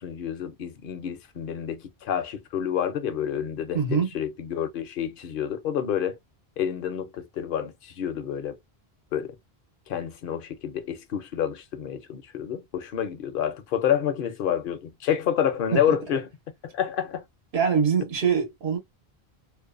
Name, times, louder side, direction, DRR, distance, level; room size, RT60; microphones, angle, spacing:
voice 1, 0.0-6.2 6.6-8.6 9.1-9.4 9.9-16.3 16.6-17.2, left 9 dB, 65° left, 0.7 m, -28 dB
voice 2, 3.7-4.1 17.5-18.8, right 6 dB, 75° right, 1.1 m, -23 dB
2.6 x 2.1 x 2.4 m
omnidirectional pair, 1.1 m